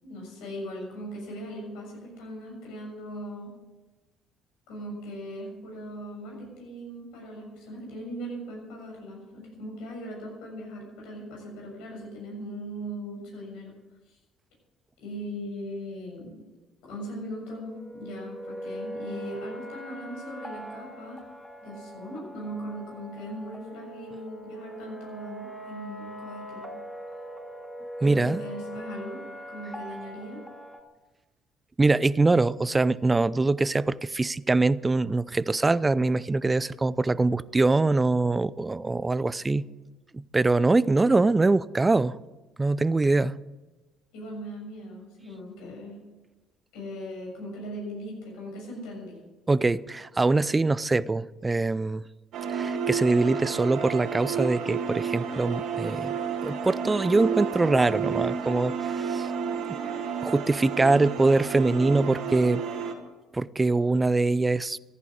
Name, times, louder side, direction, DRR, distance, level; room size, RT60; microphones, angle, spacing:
voice 1, 0.0-3.5 4.7-13.7 14.1-14.2 15.0-16.3 16.8-21.2 21.6-26.7 28.0-29.2 29.5-30.4 44.1-46.0 46.7-49.2, equal, 75° left, 6.8 m, -39 dB
sound 1, 17.5-30.8, right 1 dB, 5° left, 2.9 m, -41 dB
voice 2, 28.0-28.4 31.8-39.7 40.1-42.2 42.6-43.4 49.5-52.1 52.5-59.3 59.7-59.8 60.2-62.6 63.3-64.8, right 3 dB, 25° right, 0.6 m, -23 dB
sound 2, 52.3-62.9, right 7 dB, 65° right, 2.4 m, -31 dB
14.5 x 11.0 x 8.7 m
hypercardioid pair, 55°, 0 cm